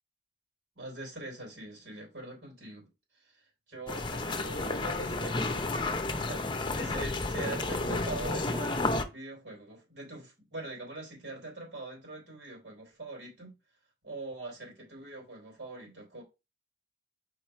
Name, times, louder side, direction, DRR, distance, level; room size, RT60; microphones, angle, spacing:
voice 1, 0.8-2.9 3.7-5.9 6.3-6.4 6.7-13.5 14.0-16.2, right 2 dB, 80° right, 3.7 m, -43 dB
sound 1, 3.9-9.0, left 2 dB, 25° left, 0.7 m, -31 dB
4.8 x 4.8 x 4.4 m
head